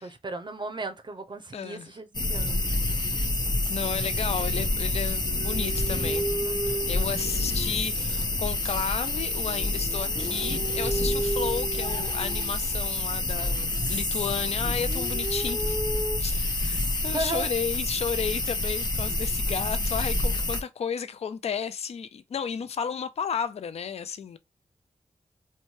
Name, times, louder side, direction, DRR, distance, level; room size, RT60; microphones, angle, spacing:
voice 1, 0.0-2.6 6.4-6.9 17.1-17.5, right 2 dB, 40° right, 0.5 m, -35 dB
voice 2, 1.5-1.9 3.0-3.1 3.7-6.3 6.9-15.8 16.2-24.4, left 7 dB, 60° left, 0.4 m, -33 dB
sound 1, 2.1-20.6, left 2 dB, 35° left, 0.8 m, -28 dB
sound 2, 5.3-8.2 8.7-12.9 13.4-14.3 14.6-16.2, right 3 dB, 5° right, 0.9 m, -35 dB
2.6 x 2.2 x 3.0 m
cardioid pair, 50°, 12 cm